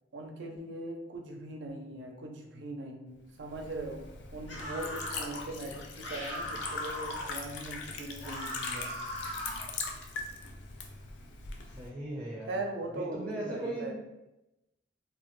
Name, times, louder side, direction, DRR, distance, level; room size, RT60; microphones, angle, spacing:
voice 1, 0.1-4.0 4.3-8.9 12.5-13.9, right 2 dB, 75° right, 2 dB, 0.4 m, -40 dB
Liquid, 3.3-11.9, left 4 dB, 70° left, 0.3 m, -41 dB
sound 1, 4.5-5.3 6.0-7.3 8.2-9.7, left 1 dB, 90° left, 0.9 m, -39 dB
voice 2, 11.6-12.6 12.9-13.9, right 1 dB, 15° right, -4 dB, 0.5 m, -38 dB
2.2 x 2.1 x 3.0 m, 0.96 s
head